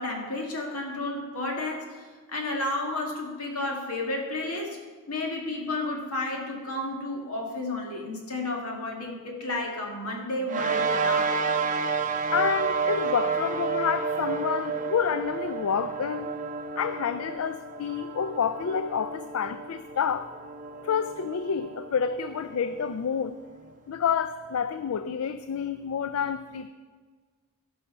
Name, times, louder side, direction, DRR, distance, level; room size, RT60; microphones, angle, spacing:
voice 1, 0.0-4.8 5.1-11.4, left 2 dB, 85° left, 0 dB, 2.2 m, -32 dB
sound 1, 10.5-23.2, right 5 dB, 35° right, 0.7 m, -31 dB
voice 2, 12.3-16.3 16.8-20.3 20.8-23.4 23.9-26.7, left 7 dB, 70° left, 11 dB, 0.4 m, -28 dB
15.5 x 5.5 x 5.6 m, 1.5 s
head